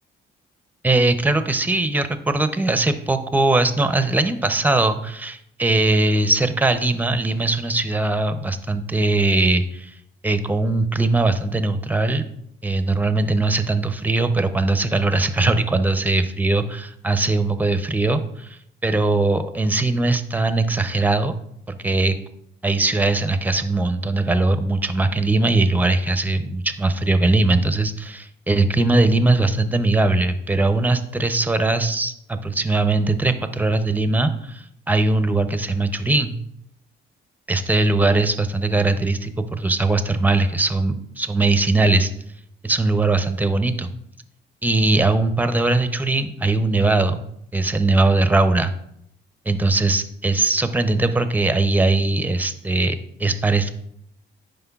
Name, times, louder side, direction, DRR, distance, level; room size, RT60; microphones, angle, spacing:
voice 1, 0.8-9.9 10.2-12.2 12.6-21.3 21.7-22.2 22.6-36.4 37.5-42.1 42.6-43.9 44.6-47.3 47.5-48.7 49.5-53.7, right 2 dB, 10° right, 10 dB, 0.5 m, -20 dB
9.6 x 5.1 x 2.3 m, 0.73 s
cardioid pair, 90°, 20 cm